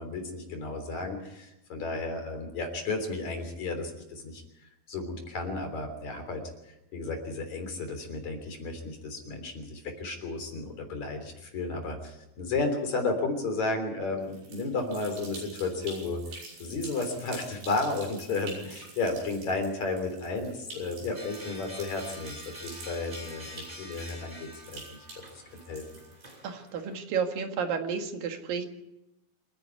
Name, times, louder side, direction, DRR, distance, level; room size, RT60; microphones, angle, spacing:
voice 1, 0.0-4.4 4.9-16.2 16.6-24.8 25.1-25.2 25.7-25.8, left 3 dB, 50° left, 5 dB, 4.6 m, -33 dB
sound 1, 14.2-26.7, right 3 dB, 85° right, 7.5 m, -47 dB
sound 2, 21.1-27.0, equal, 10° right, 2.9 m, -47 dB
voice 2, 26.4-28.7, right 6 dB, 70° right, 5 dB, 3.5 m, -31 dB
27.0 x 10.0 x 9.5 m, 0.91 s
omnidirectional pair, 4.3 m